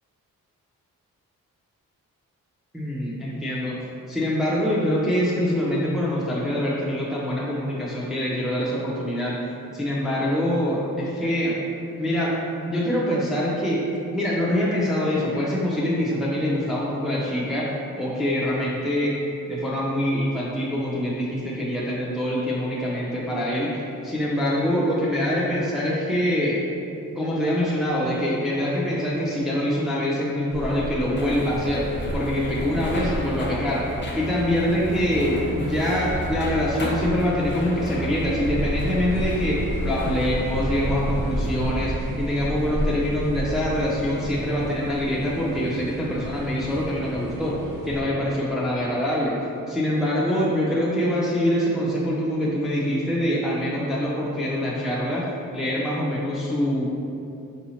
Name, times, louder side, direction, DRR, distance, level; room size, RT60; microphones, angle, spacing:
voice 1, 2.7-3.7 4.1-9.4 9.7-11.6 12.0-12.3 12.7-13.8 14.1-17.7 18.0-19.1 19.5-26.6 27.1-31.9 32.1-33.8 34.2-47.5 47.8-49.4 49.7-55.2 55.5-56.8, equal, ahead, -6 dB, 0.6 m, -24 dB
sound 1, 30.5-48.0, equal, 60° right, 0.8 m, -32 dB
sound 2, 31.1-41.7, equal, 30° left, 0.8 m, -32 dB
4.7 x 2.8 x 2.8 m, 2.6 s
supercardioid pair, 50°, 36 cm